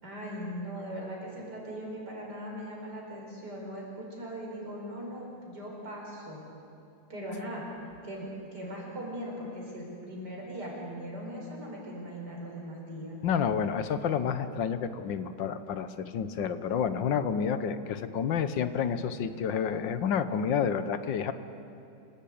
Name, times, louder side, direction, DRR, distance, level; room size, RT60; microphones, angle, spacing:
voice 1, 0.0-6.4 7.1-7.7 8.0-13.2, equal, 60° right, -2 dB, 5.8 m, -39 dB
voice 2, 13.2-21.3, left 7 dB, 80° left, 11 dB, 1.7 m, -29 dB
27.0 x 16.0 x 8.7 m, 2.6 s
omnidirectional pair, 2.0 m